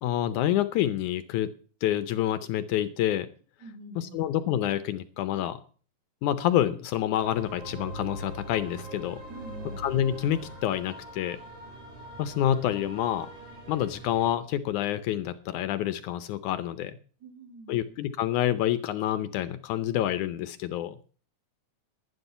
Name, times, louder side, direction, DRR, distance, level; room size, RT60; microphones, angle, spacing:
voice 1, 0.0-1.5 1.8-3.3 4.0-5.6 6.2-9.2 9.8-11.4 12.2-13.3 13.7-17.0 17.7-21.0, left 12 dB, 75° left, 13 dB, 2.0 m, -28 dB
voice 2, 3.6-4.3 9.3-9.8 17.2-17.8, right 3 dB, 35° right, 4 dB, 2.7 m, -46 dB
sound 1, 7.2-14.4, right 1 dB, 65° right, 7.9 m, -42 dB
11.5 x 11.0 x 5.6 m, 0.40 s
omnidirectional pair, 3.7 m